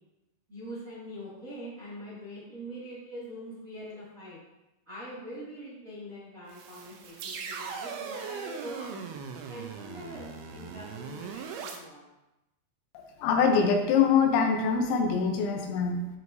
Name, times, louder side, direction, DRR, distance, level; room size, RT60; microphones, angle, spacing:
voice 1, 0.5-4.4 4.8-9.0 9.5-12.0, equal, 45° right, -9 dB, 1.0 m, -43 dB
sound 1, 6.5-11.8, right 6 dB, 85° right, 2.2 m, -39 dB
voice 2, 13.2-16.1, left 6 dB, 80° left, 3 dB, 3.1 m, -24 dB
12.0 x 4.7 x 2.7 m, 0.96 s
omnidirectional pair, 5.5 m